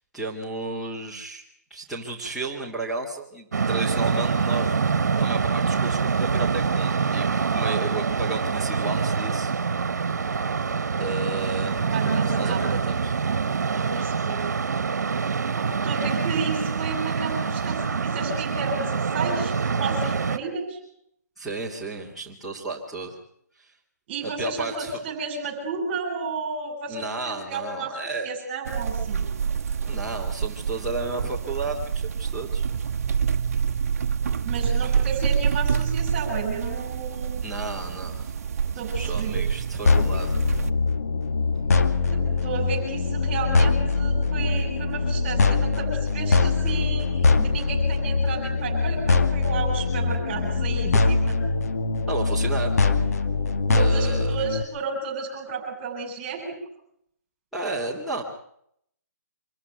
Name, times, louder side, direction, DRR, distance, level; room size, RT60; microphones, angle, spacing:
voice 1, 0.1-1.4 1.7-4.7 5.2-9.5 11.0-13.2 21.4-23.2 24.2-25.0 26.9-28.3 29.9-32.7 34.8-34.9 37.4-38.3 38.9-40.3 50.8-50.9 52.1-52.8 53.7-54.4 57.5-58.2, right 3 dB, ahead, -9 dB, 2.8 m, -33 dB
sound 1, 3.5-20.4, right 5 dB, 70° right, 1.4 m, -25 dB
voice 2, 11.6-12.6 13.7-14.4 15.6-20.8 24.1-27.9 28.2-29.2 34.4-37.4 38.8-39.3 42.0-51.3 53.7-56.6, right 4 dB, 25° right, 2 dB, 7.5 m, -32 dB
sound 2, 28.6-40.7, right 7 dB, 55° right, 1.1 m, -27 dB
sound 3, 39.9-54.6, left 3 dB, 60° left, 2.3 m, -22 dB
25.5 x 14.5 x 9.2 m, 0.71 s
hypercardioid pair, 155°, 9 cm